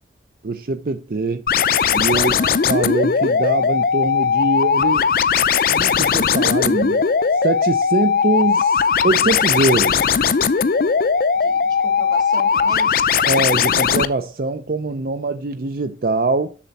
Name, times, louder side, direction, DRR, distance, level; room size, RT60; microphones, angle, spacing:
voice 1, 0.4-1.4 1.9-2.3 2.7-5.1 5.7-7.1 7.3-10.0 13.3-16.6, right 3 dB, 55° right, 0.5 m, -23 dB
sound 1, 1.5-14.1, left 6 dB, 55° left, 0.4 m, -18 dB
voice 2, 2.1-2.6 11.3-13.0, right 3 dB, 25° right, 1.4 m, -37 dB
7.3 x 6.9 x 4.1 m
head